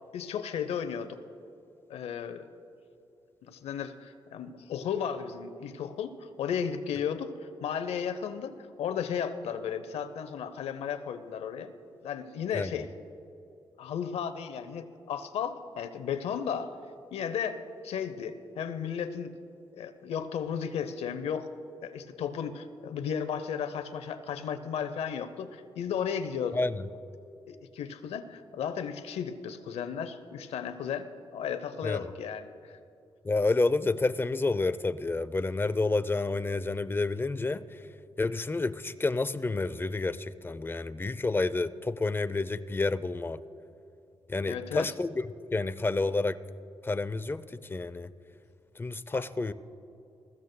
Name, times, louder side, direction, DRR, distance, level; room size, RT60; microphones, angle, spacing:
voice 1, 0.1-1.2 1.9-2.5 3.4-11.7 12.0-12.9 13.8-16.7 17.1-19.3 19.7-21.5 21.8-26.6 27.5-32.7 44.5-44.9 49.1-49.3, left 7 dB, 85° left, 11 dB, 0.7 m, -34 dB
voice 2, 33.2-37.6 38.2-43.4 44.3-45.1 45.5-46.4 46.8-47.4 47.7-48.1 48.8-49.5, left 3 dB, 20° left, 14 dB, 0.5 m, -29 dB
20.5 x 15.0 x 2.2 m, 2.6 s
cardioid pair, 60°, 10 cm